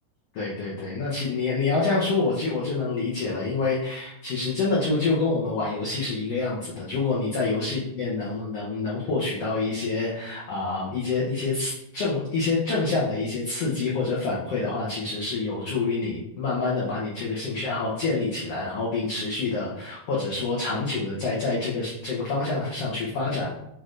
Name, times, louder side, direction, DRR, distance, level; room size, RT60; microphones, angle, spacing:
voice 1, 0.3-23.5, left 3 dB, 90° left, -6 dB, 1.3 m, -27 dB
6.2 x 3.1 x 2.5 m, 0.82 s
omnidirectional pair, 3.9 m